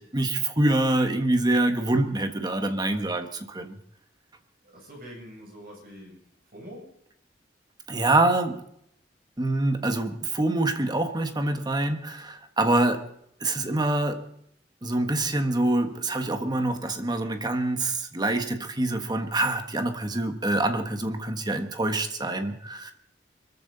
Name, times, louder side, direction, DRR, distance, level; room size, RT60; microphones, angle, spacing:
voice 1, 0.0-3.7 7.9-8.6 9.4-13.1 13.4-14.2 14.8-22.9, right 2 dB, 25° right, 1.5 m, -25 dB
voice 2, 4.6-6.2 6.5-6.9, equal, 55° right, 7.3 m, -44 dB
23.5 x 14.0 x 4.1 m
head